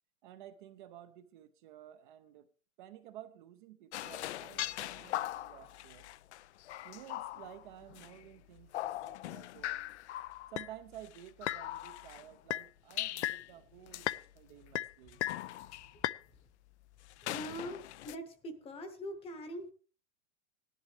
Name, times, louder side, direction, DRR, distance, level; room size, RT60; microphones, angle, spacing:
voice 1, 0.2-2.5 2.8-6.1 6.8-9.9 10.5-15.2, right 12 dB, 35° right, 0.7 m, -53 dB
sound 1, 3.9-8.2 8.6-12.2 12.5-13.5 13.9-14.2 14.6-16.2 17.0-18.1, left 15 dB, 55° left, 0.5 m, -39 dB
voice 2, 17.2-19.7, equal, 15° left, 1.0 m, -43 dB
16.5 x 11.0 x 3.3 m
supercardioid pair, 160°, 41 cm